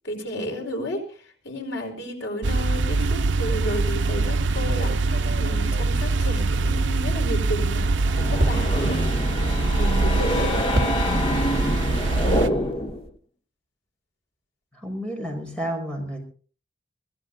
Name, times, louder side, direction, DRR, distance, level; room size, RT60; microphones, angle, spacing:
voice 1, 0.0-1.0 1.4-7.9 8.2-9.0 9.8-10.5, equal, 85° left, 3 dB, 5.0 m, -32 dB
sound 1, 2.4-12.5, right 3 dB, 85° right, 0.7 m, -23 dB
sound 2, 4.4-7.1 7.5-11.5 11.8-13.1, equal, 55° right, 2.4 m, -33 dB
sound 3, 7.8-13.1, left 1 dB, 30° left, 1.2 m, -27 dB
voice 2, 11.1-11.5 11.9-12.7 14.7-16.2, equal, 5° left, 1 dB, 5.6 m, -32 dB
25.0 x 17.0 x 2.7 m, 0.40 s
head